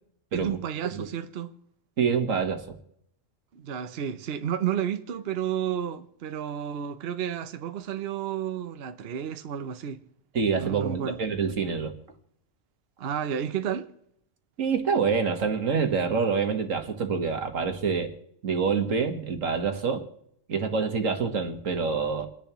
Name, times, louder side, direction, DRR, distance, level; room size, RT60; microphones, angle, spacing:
voice 1, 0.3-1.5 3.5-10.0 10.6-11.2 13.0-13.9, right 9 dB, 55° right, 0.9 m, -31 dB
voice 2, 2.0-2.7 10.3-11.9 14.6-18.1 18.4-20.1 20.5-22.3, right 5 dB, 90° right, 1.9 m, -26 dB
29.0 x 10.5 x 3.1 m
omnidirectional pair, 1.3 m